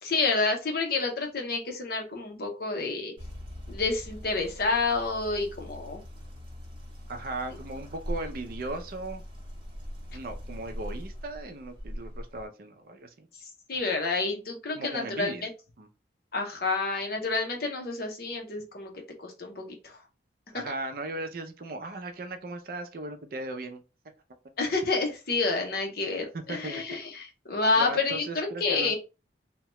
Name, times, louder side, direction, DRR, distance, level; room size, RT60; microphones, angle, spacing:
voice 1, 0.0-3.1 3.7-6.0 13.7-15.5 16.3-18.9 19.2-19.9 24.6-29.0, left 3 dB, 55° left, 2 dB, 0.7 m, -29 dB
sound 1, 3.2-12.5, equal, 25° right, 0.8 m, -41 dB
voice 2, 7.1-9.2 10.1-13.3 14.7-15.5 15.8-15.9 20.5-23.8 26.3-26.8 27.8-29.0, right 2 dB, 50° right, 7 dB, 0.4 m, -37 dB
2.8 x 2.2 x 3.0 m, 0.31 s
head